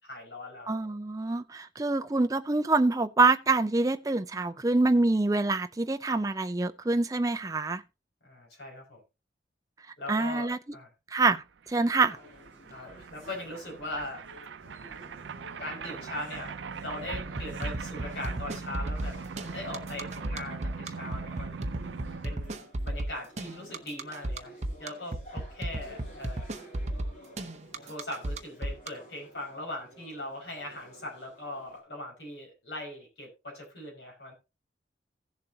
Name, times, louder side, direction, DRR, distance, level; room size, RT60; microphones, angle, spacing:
voice 1, 0.0-0.8 8.2-9.0 10.0-10.9 12.7-14.2 15.6-19.2 19.5-21.6 22.2-24.5 24.8-26.5 27.8-34.3, left 1 dB, 70° left, 5.4 m, -40 dB
voice 2, 0.7-7.8 10.1-10.6 11.1-12.2, right 3 dB, 20° right, 0.4 m, -26 dB
sound 1, 11.4-11.5 11.6-22.5, right 5 dB, 85° right, 0.5 m, -41 dB
sound 2, 11.9-31.8, equal, 40° left, 7.0 m, -53 dB
sound 3, 17.1-28.9, right 1 dB, 40° right, 0.8 m, -34 dB
16.5 x 7.3 x 2.8 m
head